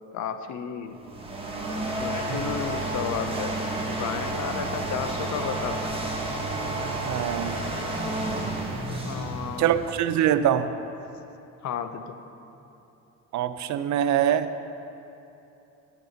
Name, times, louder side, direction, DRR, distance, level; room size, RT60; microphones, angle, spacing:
voice 1, 0.1-1.0 2.0-6.0 9.0-9.7 11.6-12.2, left 7 dB, 70° left, 9 dB, 0.7 m, -33 dB
sound 1, 0.9-10.1, right 2 dB, 20° right, 1.5 m, -31 dB
voice 2, 7.0-7.6 9.6-10.7 13.3-14.5, right 10 dB, 70° right, 12 dB, 0.5 m, -24 dB
9.1 x 8.1 x 5.1 m, 2.9 s
cardioid pair, 90°, 30 cm